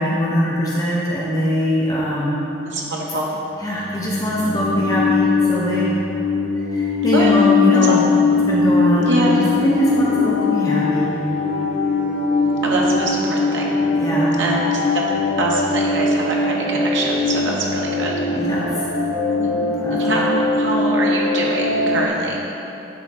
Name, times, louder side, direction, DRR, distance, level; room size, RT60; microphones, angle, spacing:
voice 1, 0.0-2.4 3.6-5.9 6.7-8.0 8.5-11.1 14.0-14.3 18.3-18.7 19.7-20.0, equal, 20° left, -7 dB, 0.8 m, -21 dB
voice 2, 2.6-3.3 7.1-7.3 7.7-8.2 9.1-9.4 12.4-13.7 14.4-15.0 15.4-18.2 19.4-19.5 19.9-22.4, right 1 dB, 70° right, -3 dB, 1.0 m, -24 dB
sound 1, 3.3-22.1, left 4 dB, 85° left, 0.8 m, -21 dB
10.0 x 3.6 x 4.4 m, 2.9 s
head